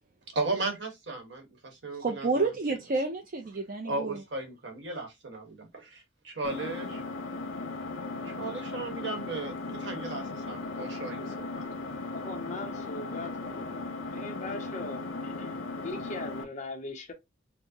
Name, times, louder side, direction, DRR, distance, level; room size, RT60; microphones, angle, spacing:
voice 1, 0.3-2.5 3.8-7.0 8.2-11.6, right 3 dB, 65° right, 1.1 m, -36 dB
voice 2, 2.0-4.2, right 3 dB, 45° right, 0.5 m, -30 dB
Engine, 6.4-16.4, left 3 dB, 85° left, 0.7 m, -37 dB
voice 3, 12.1-13.7 14.1-17.1, left 2 dB, 35° left, 0.7 m, -40 dB
4.4 x 2.1 x 2.8 m
head